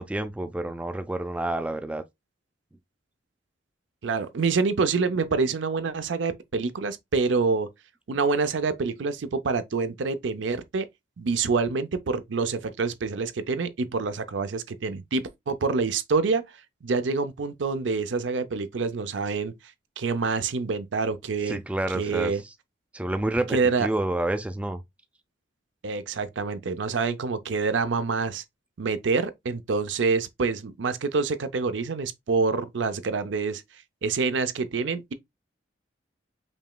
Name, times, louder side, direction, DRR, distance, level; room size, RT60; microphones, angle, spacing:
voice 1, 0.0-2.0 21.5-22.3 22.9-24.8, right 1 dB, 5° right, 0.3 m, -29 dB
voice 2, 4.0-7.7 8.1-10.9 11.2-16.4 16.8-19.5 20.0-21.6 21.9-22.4 23.5-23.9 25.8-28.4 28.8-33.6 34.0-35.1, right 4 dB, 80° right, 0.5 m, -26 dB
5.3 x 3.0 x 2.3 m
head